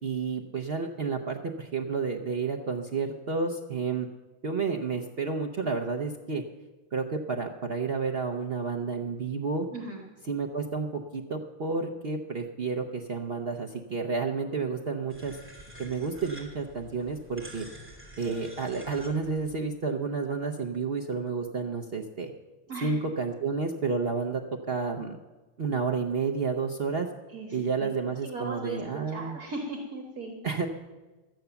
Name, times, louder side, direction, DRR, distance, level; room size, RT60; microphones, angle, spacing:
voice 1, 0.0-4.1 4.4-6.4 6.9-9.7 10.3-15.4 15.8-17.7 18.2-22.3 22.8-24.4 24.7-25.2 25.6-27.1 27.5-29.4 30.4-30.7, right 4 dB, 70° right, 2 dB, 0.5 m, -30 dB
voice 2, 9.7-10.0 18.2-18.4 22.7-23.0 27.3-27.9 28.2-28.8 29.1-30.4, right 2 dB, 50° right, 1 dB, 1.8 m, -38 dB
sound 1, 15.1-19.6, right 1 dB, 5° right, 2.9 m, -48 dB
13.0 x 9.2 x 6.9 m, 1.2 s
omnidirectional pair, 2.1 m